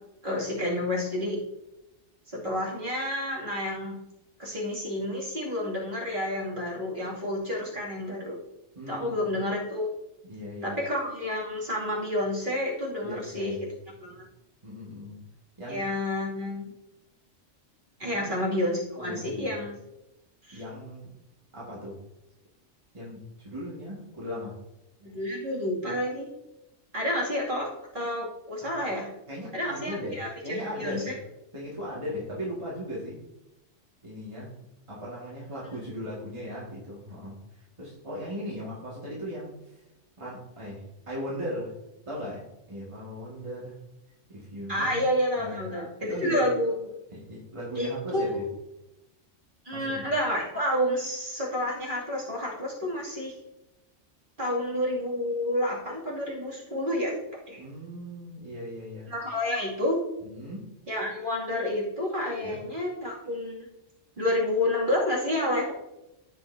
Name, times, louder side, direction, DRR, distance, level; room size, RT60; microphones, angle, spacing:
voice 1, 0.2-1.4 2.3-4.0 4.4-8.4 8.9-9.9 10.6-13.5 14.0-14.2 15.7-16.7 18.0-19.7 20.5-20.6 25.0-26.3 26.9-29.1 29.5-31.1 44.7-46.7 47.7-48.4 49.6-53.4 54.4-57.2 57.5-57.6 59.1-60.0 60.9-63.7 64.2-65.7, left 1 dB, 40° right, -5 dB, 2.6 m, -29 dB
voice 2, 8.8-9.2 10.2-10.8 13.0-13.7 14.0-14.2 14.6-15.2 15.6-15.9 18.1-18.4 19.0-19.5 20.5-21.1 21.5-22.0 22.9-24.6 29.3-30.2 30.4-31.1 31.5-33.2 34.0-34.5 34.9-37.4 37.8-39.5 40.2-41.7 42.1-43.8 44.3-45.1 45.4-45.6 46.0-46.5 47.1-48.5 49.7-50.1 57.6-59.1 60.2-60.7 62.4-62.6, equal, 25° right, -6 dB, 1.9 m, -37 dB
15.5 x 5.5 x 2.7 m, 0.90 s
omnidirectional pair, 1.3 m